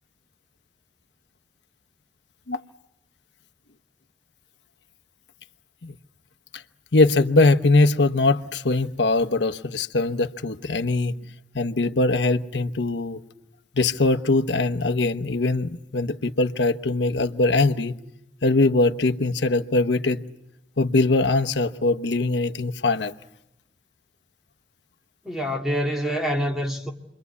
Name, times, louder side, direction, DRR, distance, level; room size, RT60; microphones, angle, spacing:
voice 1, 6.9-11.2 11.5-13.2 13.7-18.0 18.4-20.2 20.8-23.1, left 2 dB, 90° left, 1.0 m, -21 dB
voice 2, 25.2-26.9, equal, ahead, 2.2 m, -26 dB
28.0 x 23.0 x 8.3 m
head